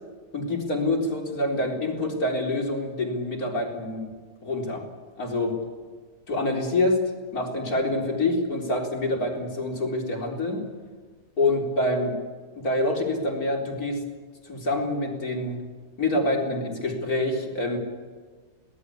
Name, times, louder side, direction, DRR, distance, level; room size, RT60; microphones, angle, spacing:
voice 1, 0.3-4.1 4.4-4.8 5.2-5.6 6.3-7.0 7.3-10.6 11.4-12.2 12.6-14.0 14.5-15.6 16.0-17.8, left 2 dB, 65° left, 1 dB, 4.6 m, -26 dB
23.5 x 18.5 x 8.5 m, 1.5 s
omnidirectional pair, 1.7 m